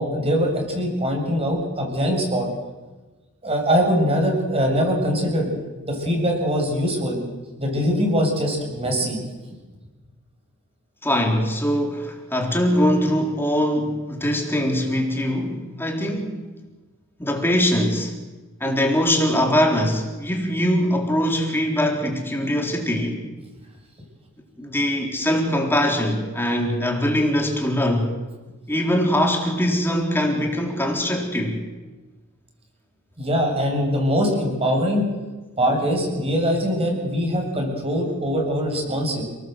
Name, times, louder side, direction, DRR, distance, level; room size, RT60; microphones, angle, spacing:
voice 1, 0.0-2.5 3.4-5.5 5.8-7.2 7.6-9.2 33.2-35.1 35.6-39.2, equal, 30° right, 2 dB, 7.4 m, -22 dB
voice 2, 11.0-16.4 17.2-18.1 18.6-23.2 24.6-28.1 28.7-31.6, equal, 10° left, 1 dB, 4.1 m, -22 dB
30.0 x 19.5 x 8.0 m, 1.2 s
head